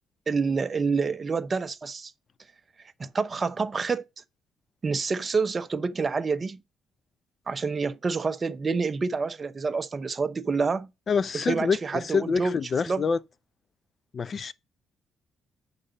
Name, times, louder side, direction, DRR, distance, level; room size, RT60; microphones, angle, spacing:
voice 1, 0.3-2.1 3.0-4.0 4.8-6.6 7.5-10.9 11.3-12.6 12.9-13.0, right 4 dB, 35° right, 0.8 m, -27 dB
voice 2, 11.1-13.2 14.1-14.5, left 5 dB, 45° left, 0.6 m, -26 dB
7.8 x 5.5 x 5.3 m
cardioid pair, 90°, 0 cm